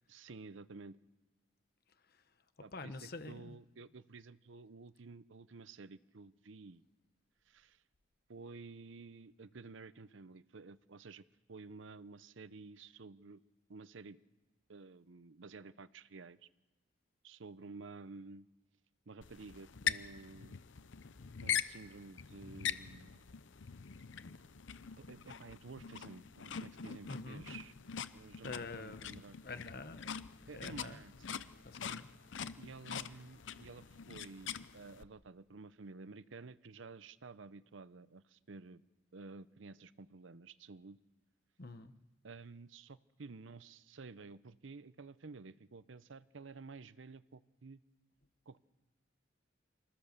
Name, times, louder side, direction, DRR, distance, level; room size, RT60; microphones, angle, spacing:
voice 1, 0.1-1.0 2.6-6.8 7.5-7.8 8.3-13.4 13.7-14.2 14.7-16.5 17.2-18.5 19.1-20.6 21.4-23.2 24.9-27.7 28.1-29.4 30.5-31.4 32.6-38.8 39.1-41.0 42.2-47.8 48.5-48.6, right 4 dB, 75° right, 16 dB, 0.7 m, -52 dB
voice 2, 2.7-3.5 27.1-27.4 28.4-29.1 29.4-30.1 30.5-31.0 31.6-32.1 41.6-41.9, left 3 dB, 50° left, 11 dB, 1.1 m, -46 dB
sound 1, 19.2-35.0, left 8 dB, 70° left, 0.7 m, -43 dB
26.5 x 14.5 x 6.7 m, 1.1 s
head